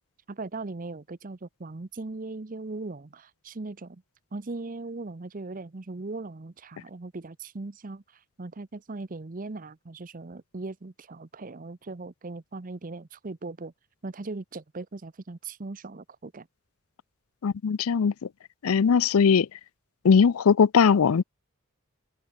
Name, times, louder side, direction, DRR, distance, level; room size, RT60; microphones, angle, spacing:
voice 1, 0.3-4.0 4.3-8.0 8.4-13.7 14.0-16.5, right 3 dB, 40° right, 0.7 m, -39 dB
voice 2, 17.4-18.1 18.6-19.5 20.0-21.2, left 6 dB, 80° left, 0.5 m, -20 dB
open air
head